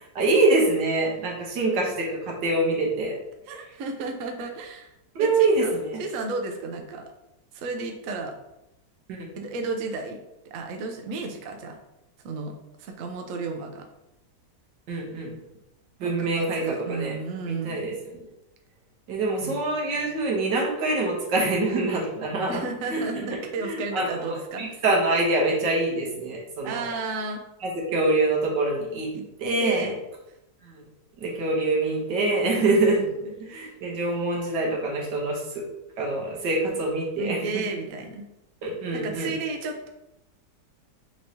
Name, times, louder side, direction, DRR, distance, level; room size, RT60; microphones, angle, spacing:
voice 1, 0.1-3.1 5.1-5.9 9.1-9.2 14.9-15.3 16.0-17.2 17.5-17.9 19.1-22.6 22.9-23.1 23.6-26.9 27.6-29.1 29.4-29.9 30.6-30.8 31.2-33.0 33.4-35.6 36.0-37.6 38.6-39.3, right 2 dB, 90° right, -2 dB, 1.7 m, -25 dB
voice 2, 3.5-4.9 5.2-5.7 6.0-7.1 7.5-8.3 9.3-10.2 10.4-11.8 12.2-13.9 16.0-17.9 19.4-19.6 22.5-24.8 26.6-27.4 29.1-29.3 29.6-29.9 32.6-33.1 33.6-33.7 37.2-38.2 38.9-39.9, right 4 dB, 65° right, 3 dB, 0.9 m, -33 dB
6.2 x 3.1 x 2.7 m, 0.90 s
omnidirectional pair, 1.9 m